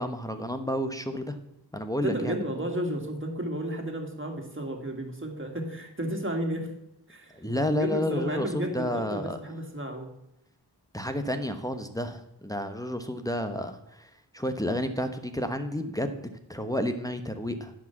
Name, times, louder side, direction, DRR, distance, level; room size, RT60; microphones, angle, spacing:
voice 1, 0.0-1.4 1.7-2.4 7.3-9.4 10.9-17.7, left 1 dB, 10° left, 7 dB, 1.1 m, -31 dB
voice 2, 2.0-6.7 7.1-10.2, right 1 dB, 30° right, 2 dB, 2.4 m, -33 dB
10.5 x 5.1 x 7.0 m, 0.82 s
cardioid pair, 40°, 44 cm